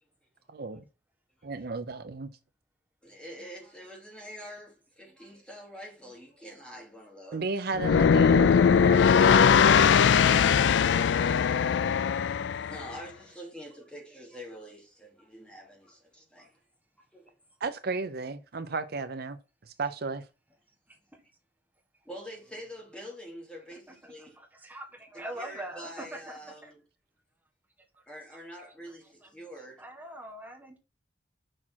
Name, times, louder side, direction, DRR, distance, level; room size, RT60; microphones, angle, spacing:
voice 1, 0.5-0.8 1.4-2.3 7.3-10.1 17.6-19.4 19.7-20.2, right 4 dB, 60° right, 0.6 m, -34 dB
voice 2, 3.0-7.5 10.6-16.6 17.0-17.3 22.0-24.4 25.4-26.8 28.1-29.8, equal, 5° left, 2.6 m, -46 dB
sound 1, 7.7-12.9, left 7 dB, 80° left, 0.4 m, -20 dB
voice 3, 23.7-26.7 28.0-28.1 28.6-29.0 29.2-29.3 29.8-30.8, right 1 dB, 10° right, 1.6 m, -43 dB
6.4 x 6.0 x 4.5 m
head